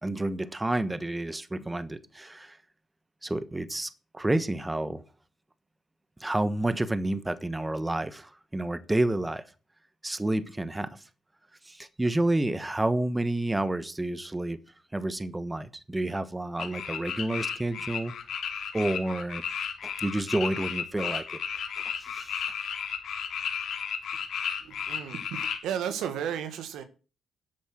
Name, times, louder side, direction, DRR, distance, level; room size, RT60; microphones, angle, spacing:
voice 1, 0.0-2.6 3.2-5.0 6.2-9.4 10.0-11.0 11.6-14.6 14.9-18.1 18.7-19.4 19.8-21.4 22.0-22.4, right 1 dB, 15° right, 1.2 m, -29 dB
sound 1, 16.6-25.6, left 7 dB, 70° left, 3.6 m, -33 dB
voice 2, 24.6-26.8, right 9 dB, 85° right, 1.8 m, -34 dB
12.5 x 8.1 x 6.2 m
cardioid pair, 90°, 0 cm